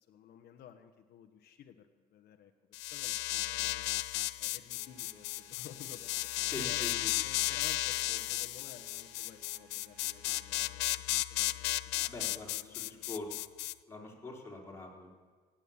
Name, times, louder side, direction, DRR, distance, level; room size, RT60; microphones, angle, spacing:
voice 1, 0.1-2.5 2.8-3.9 4.4-6.1 6.7-12.1 12.5-13.1, left 9 dB, 65° left, 5 dB, 1.1 m, -54 dB
sound 1, 2.7-13.7, left 19 dB, 90° left, 0.4 m, -34 dB
sound 2, 4.7-10.8, right 3 dB, 55° right, 4.9 m, -61 dB
voice 2, 6.5-7.1 12.0-13.3 13.9-15.1, left 2 dB, 15° left, -2 dB, 3.9 m, -43 dB
17.0 x 9.0 x 7.1 m, 1.5 s
cardioid pair, 110°, 17 cm